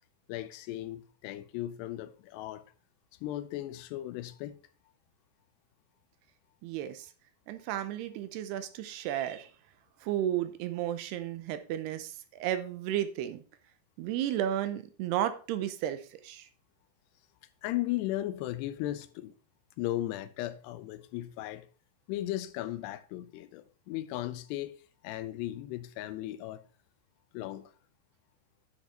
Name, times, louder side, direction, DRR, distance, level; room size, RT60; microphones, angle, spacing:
voice 1, 0.3-2.6 3.2-4.6 17.6-19.3 19.8-21.7 22.1-24.8 25.0-26.6 27.3-27.7, left 14 dB, 85° left, 2.7 m, -36 dB
voice 2, 6.6-7.1 7.5-9.5 10.0-13.4 14.0-16.5, right 11 dB, 80° right, 2.7 m, -33 dB
10.0 x 6.5 x 4.2 m
omnidirectional pair, 4.8 m